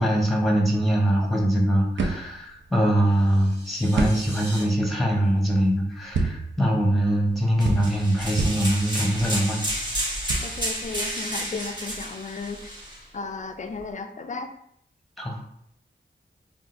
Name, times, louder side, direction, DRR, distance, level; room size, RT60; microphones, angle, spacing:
voice 1, 0.0-9.6 15.2-15.4, right 1 dB, ahead, 0 dB, 0.9 m, -23 dB
sound 1, 1.2-11.9, right 3 dB, 85° right, 0.5 m, -32 dB
sound 2, 3.0-4.6, right 1 dB, 65° right, 1.4 m, -42 dB
sound 3, 7.6-13.0, equal, 25° right, 1.2 m, -31 dB
voice 2, 10.4-12.8 13.1-14.5, left 4 dB, 40° left, 7 dB, 0.4 m, -34 dB
3.6 x 2.4 x 2.6 m, 0.71 s
cardioid pair, 50°, 19 cm